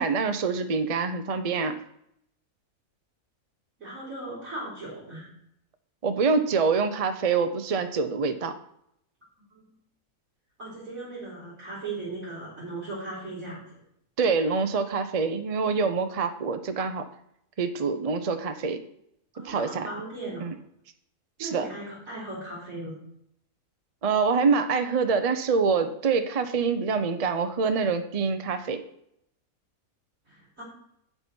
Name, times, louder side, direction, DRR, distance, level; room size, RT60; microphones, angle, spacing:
voice 1, 0.0-1.8 6.0-8.5 14.2-17.0 17.6-18.8 19.4-19.9 20.4-20.5 21.4-21.7 24.0-28.8, right 5 dB, 35° right, 8 dB, 0.6 m, -25 dB
voice 2, 3.8-5.3 9.4-9.6 10.6-13.8 19.3-20.5 21.4-23.0 30.3-30.6, right 2 dB, 65° right, -9 dB, 4.6 m, -38 dB
8.7 x 7.9 x 4.5 m, 0.74 s
omnidirectional pair, 1.5 m